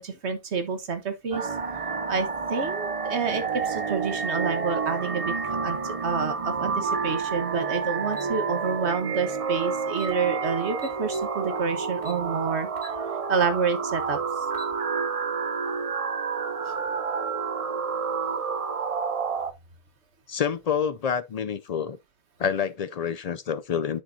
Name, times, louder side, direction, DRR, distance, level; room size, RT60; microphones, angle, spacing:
voice 1, 0.0-1.5 2.1-12.7 13.3-14.2, right 5 dB, 75° right, 1.5 m, -29 dB
sound 1, 1.3-19.5, right 5 dB, 40° right, 0.6 m, -29 dB
sound 2, 8.1-8.3 9.5-9.6 9.9-10.1 10.8-11.3 12.0-12.2 12.8-13.0 13.4-13.5 14.3-14.7, left 3 dB, 40° left, 2.3 m, -45 dB
voice 2, 20.3-22.0 22.4-24.0, left 7 dB, 60° left, 0.4 m, -27 dB
10.0 x 5.4 x 2.7 m
omnidirectional pair, 1.2 m